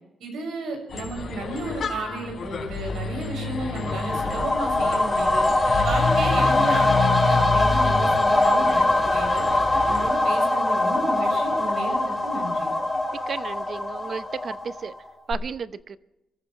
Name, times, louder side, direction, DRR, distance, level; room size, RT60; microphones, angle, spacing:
voice 1, 0.2-5.5 5.8-9.5 9.8-12.7, right 2 dB, 80° right, 2 dB, 6.5 m, -33 dB
sound 1, 0.9-10.1, left 5 dB, 45° left, 3.8 m, -29 dB
sound 2, 3.5-15.0 15.3-15.4, left 2 dB, 10° left, 3.3 m, -22 dB
voice 2, 13.3-14.9 15.3-16.0, right 6 dB, 40° right, 13 dB, 0.8 m, -33 dB
27.0 x 14.5 x 3.2 m, 0.93 s
cardioid pair, 145°, 0 cm